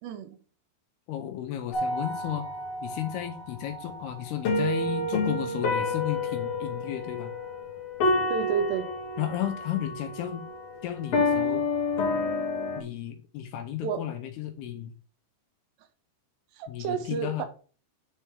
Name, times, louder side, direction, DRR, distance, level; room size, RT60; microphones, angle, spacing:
voice 1, 0.0-0.4 8.3-8.9 13.8-14.1 16.5-17.5, right 6 dB, 80° right, 8 dB, 2.9 m, -30 dB
voice 2, 1.1-2.5 2.8-7.3 9.2-10.4 10.8-11.6 12.8-14.9 16.7-17.4, left 11 dB, 80° left, 6 dB, 2.6 m, -33 dB
sound 1, 1.7-12.8, left 2 dB, 60° left, 1.7 m, -29 dB
10.0 x 4.4 x 3.5 m, 0.39 s
omnidirectional pair, 5.0 m